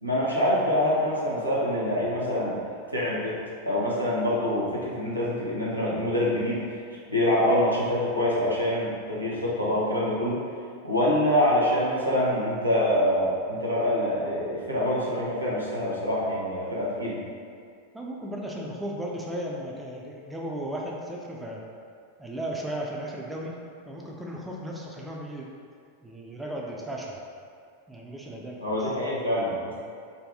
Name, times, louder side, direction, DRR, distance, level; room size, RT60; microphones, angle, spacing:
voice 1, 0.0-2.6 2.9-3.4 3.6-6.6 7.1-10.4 10.8-17.2 28.6-29.8, left 1 dB, 85° right, -6 dB, 0.6 m, -25 dB
voice 2, 17.9-21.6 22.2-23.5 23.9-25.5 26.0-27.2 27.9-28.9, right 1 dB, 5° right, -2 dB, 0.4 m, -35 dB
2.6 x 2.3 x 3.4 m, 2.3 s
figure-of-eight pair, 90°, 0 cm